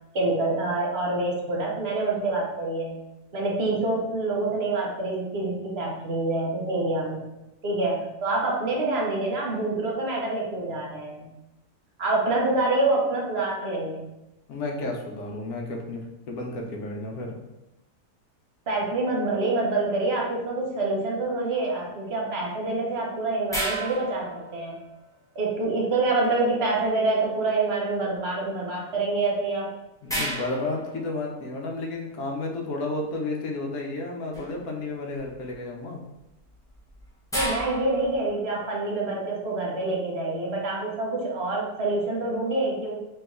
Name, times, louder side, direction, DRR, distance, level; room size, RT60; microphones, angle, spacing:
voice 1, 0.1-3.0 3.3-7.2 7.6-11.3 12.0-14.1 18.7-24.8 25.3-29.7 37.3-43.0, right 2 dB, 50° right, -2 dB, 0.9 m, -26 dB
voice 2, 14.5-17.4 30.0-36.0, left 2 dB, 75° left, 0 dB, 1.2 m, -32 dB
sound 1, 23.5-25.1 29.2-29.3 30.1-31.7 34.3-34.7 35.1-35.5 36.4-38.4, equal, 5° left, 0.5 m, -33 dB
3.3 x 3.1 x 3.6 m, 0.96 s
omnidirectional pair, 1.7 m